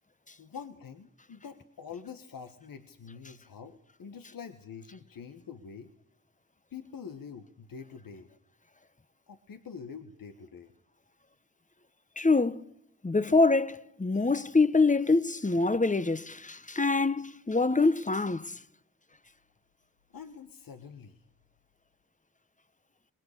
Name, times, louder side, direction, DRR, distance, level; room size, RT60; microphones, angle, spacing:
voice 1, 0.4-5.9 6.7-8.3 9.3-10.7 20.1-21.2, left 6 dB, 85° left, 1.4 m, -45 dB
voice 2, 12.2-12.6 13.0-18.6, left 3 dB, 20° left, 1.0 m, -25 dB
26.5 x 21.5 x 6.7 m
cardioid pair, 40°, 34 cm